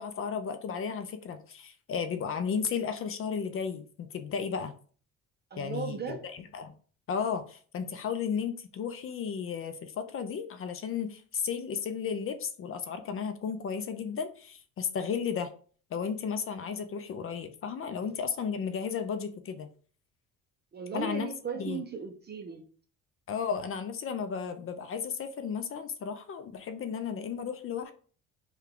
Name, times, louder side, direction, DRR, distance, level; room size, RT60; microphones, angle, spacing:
voice 1, 0.0-4.7 5.6-6.7 7.1-15.5 15.9-19.7 20.9-21.3 21.6-21.8 23.3-27.9, left 6 dB, 45° left, 8 dB, 0.5 m, -34 dB
voice 2, 5.5-6.2 20.7-22.7, right 6 dB, 30° right, 5 dB, 0.5 m, -37 dB
3.3 x 2.3 x 3.6 m, 0.42 s
cardioid pair, 110°, 32 cm